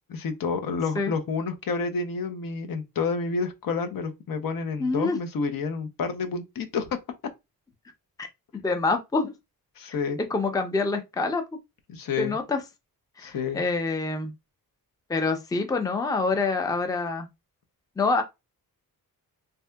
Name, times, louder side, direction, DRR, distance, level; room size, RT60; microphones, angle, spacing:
voice 1, 0.1-6.9 9.8-10.2 11.9-12.4 13.2-13.6, left 4 dB, 70° left, 0.7 m, -29 dB
voice 2, 4.8-5.2 8.2-8.3 8.6-9.3 10.3-11.4 12.2-12.6 13.2-14.3 15.1-17.3 18.0-18.2, left 3 dB, 10° left, 0.4 m, -26 dB
3.4 x 2.7 x 2.2 m
wide cardioid pair, 135°, 36 cm